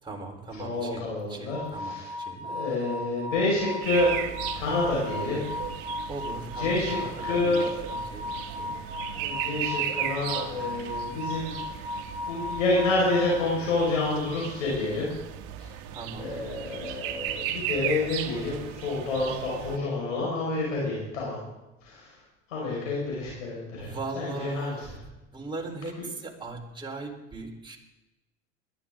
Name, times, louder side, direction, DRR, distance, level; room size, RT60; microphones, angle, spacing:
voice 1, 0.0-2.5 6.1-8.8 15.9-16.4 23.8-24.9 25.3-27.8, right 3 dB, 10° right, 0 dB, 4.3 m, -39 dB
voice 2, 0.6-2.1 2.4-4.2 4.5-5.4 6.6-7.0 7.2-7.7 9.1-11.5 12.3-15.1 15.6-15.7 16.2-21.4 21.8-22.1 22.5-24.8, left 2 dB, 85° left, -4 dB, 5.6 m, -28 dB
sound 1, 1.5-13.7, left 2 dB, 5° left, 4.7 m, -37 dB
sound 2, 3.8-19.8, right 11 dB, 60° right, 1.4 m, -36 dB
21.0 x 13.0 x 3.8 m, 1.0 s
hypercardioid pair, 85°, 37 cm